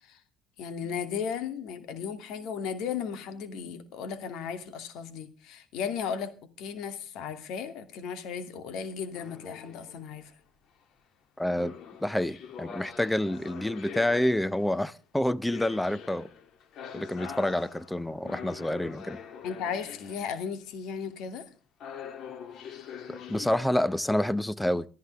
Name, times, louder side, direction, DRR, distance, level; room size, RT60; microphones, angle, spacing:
voice 1, 0.6-6.3 6.6-10.3 19.4-21.5, left 7 dB, 70° left, 2.7 m, -35 dB
sound 1, 9.1-10.2 11.5-14.9 15.5-20.5 21.8-24.2, left 7 dB, 55° left, 2.7 m, -44 dB
voice 2, 11.4-11.7 12.0-16.3 16.9-19.2 23.1-24.9, left 1 dB, 5° left, 0.8 m, -28 dB
22.5 x 13.5 x 3.5 m
cardioid pair, 120°, 0 cm